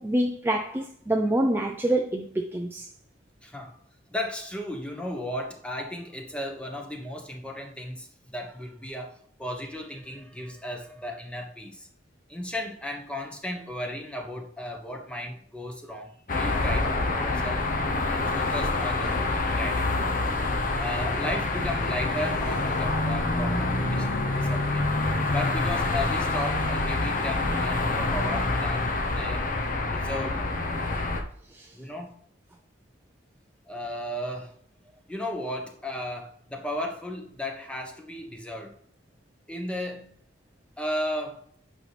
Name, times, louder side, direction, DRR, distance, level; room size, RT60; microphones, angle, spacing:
voice 1, 0.0-2.9 31.5-31.7, right 1 dB, 10° right, 0.4 m, -26 dB
voice 2, 3.4-3.8 4.1-11.9 12.3-17.7 18.1-20.3 20.8-24.9 25.3-29.5 29.9-30.5 31.7-32.2 33.7-34.5 35.1-38.8 39.5-40.1 40.8-41.4, left 1 dB, 5° left, 1.0 m, -35 dB
sound 1, 16.3-31.2, left 2 dB, 45° left, 0.9 m, -26 dB
8.8 x 5.4 x 3.3 m
head